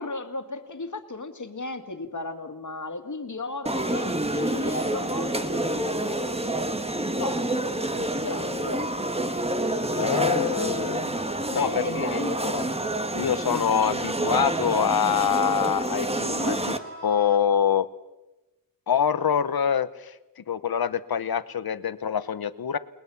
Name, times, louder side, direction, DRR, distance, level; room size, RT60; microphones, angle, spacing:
voice 1, 0.0-6.2 7.2-8.9 10.0-10.3 11.5-12.8, left 3 dB, 50° left, 7 dB, 2.2 m, -35 dB
sound 1, 3.7-16.8, right 1 dB, 15° right, 1.5 m, -28 dB
voice 2, 9.9-11.2 11.5-12.2 13.1-16.8 17.0-17.9 18.9-20.1 20.5-22.8, left 8 dB, 75° left, 15 dB, 1.0 m, -25 dB
sound 2, 16.0-17.4, right 2 dB, 35° right, 6.0 m, -50 dB
29.5 x 20.5 x 7.1 m, 1.0 s
wide cardioid pair, 105°, 37 cm